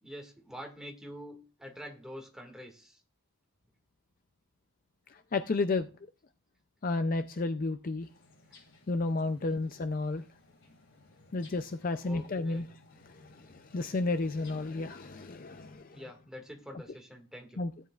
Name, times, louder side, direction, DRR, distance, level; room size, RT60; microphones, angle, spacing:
voice 1, 0.0-3.0 9.4-9.6 12.0-12.6 15.8-17.6, equal, 5° right, 1.9 m, -46 dB
voice 2, 5.1-5.9 6.8-8.1 8.9-10.2 11.3-12.7 13.0-16.0 17.6-17.7, left 3 dB, 40° left, 0.4 m, -32 dB
sound 1, 8.0-15.8, left 2 dB, 60° left, 7.2 m, -60 dB
16.0 x 10.0 x 2.4 m
head